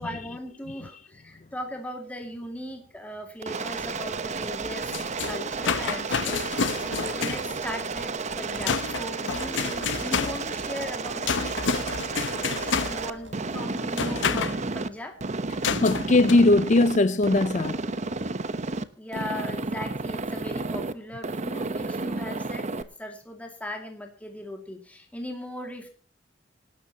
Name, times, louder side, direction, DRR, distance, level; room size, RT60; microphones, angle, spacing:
voice 1, 0.0-4.9 5.2-15.2 18.7-25.9, left 1 dB, 10° left, 2.2 m, -39 dB
Aircraft, 3.4-14.9 15.2-17.0 17.2-18.8 19.1-20.9 21.2-22.8, right 3 dB, 40° right, 0.9 m, -32 dB
sound 1, 3.6-14.0, right 3 dB, 70° right, 3.8 m, -46 dB
sound 2, 4.6-14.6 15.6-16.4, left 5 dB, 75° left, 0.8 m, -30 dB
voice 2, 15.7-17.8, left 2 dB, 40° left, 0.6 m, -20 dB
25.0 x 12.5 x 2.9 m
head